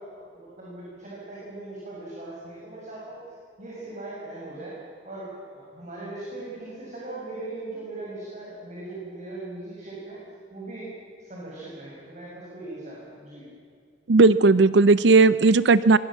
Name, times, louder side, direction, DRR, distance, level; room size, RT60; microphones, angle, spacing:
voice 1, 0.0-3.2 3.6-4.8 5.0-10.2 10.5-10.9 11.2-13.5, right 2 dB, 40° right, -6 dB, 6.7 m, -39 dB
voice 2, 14.1-16.0, right 3 dB, 75° right, 16 dB, 0.6 m, -16 dB
26.5 x 22.5 x 7.5 m, 2.2 s
head